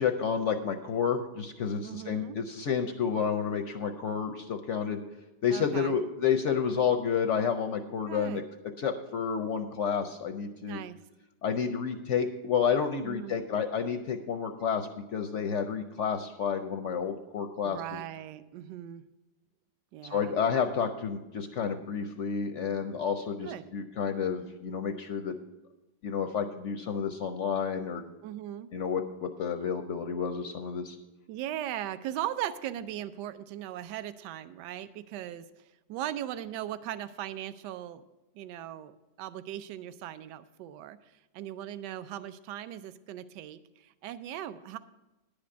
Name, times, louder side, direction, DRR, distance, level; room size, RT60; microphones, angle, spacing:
voice 1, 0.0-5.0 5.4-8.4 8.8-10.8 11.4-18.0 20.1-25.4 26.0-28.0 28.7-31.0, left 7 dB, 70° left, 7 dB, 0.7 m, -30 dB
voice 2, 1.8-2.4 5.5-6.0 8.1-8.4 10.6-11.0 13.0-13.4 17.6-19.0 19.9-20.4 23.4-23.7 28.2-28.7 31.3-38.0 38.3-41.0 41.3-44.8, right 12 dB, 75° right, 13 dB, 1.2 m, -39 dB
10.5 x 5.1 x 8.2 m, 1.0 s
omnidirectional pair, 1.9 m